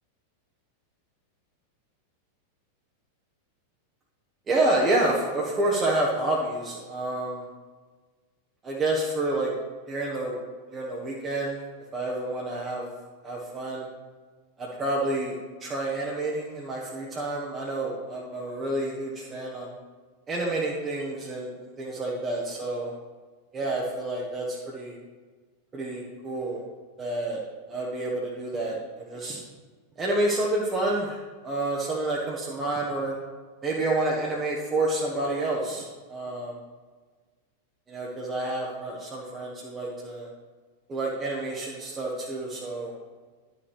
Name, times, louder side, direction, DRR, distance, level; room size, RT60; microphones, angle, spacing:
voice 1, 4.5-7.5 8.6-9.5 9.9-10.4 10.7-11.7 11.9-12.9 13.2-13.9 14.6-19.7 20.3-22.9 23.5-25.0 25.7-26.6 27.0-27.4 27.7-29.4 30.0-33.2 33.6-36.6 37.9-40.3 40.9-42.9, right 2 dB, 20° right, -4 dB, 1.3 m, -29 dB
11.0 x 5.3 x 3.5 m, 1.4 s
figure-of-eight pair, 90°, 0 cm